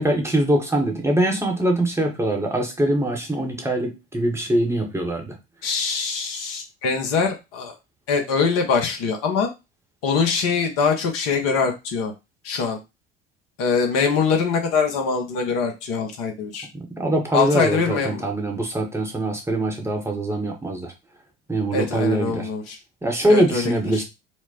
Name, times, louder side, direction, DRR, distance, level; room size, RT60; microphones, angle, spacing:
voice 1, 0.0-5.3 17.0-20.9 21.5-22.5 23.0-24.0, right 1 dB, 10° right, 1 dB, 0.9 m, -23 dB
voice 2, 5.6-7.7 8.1-9.5 10.0-12.1 12.4-12.8 13.6-16.7 17.3-18.2 21.7-22.8 23.3-24.0, left 5 dB, 50° left, 3 dB, 0.9 m, -23 dB
4.5 x 2.1 x 2.8 m, 0.25 s
figure-of-eight pair, 60°, 32 cm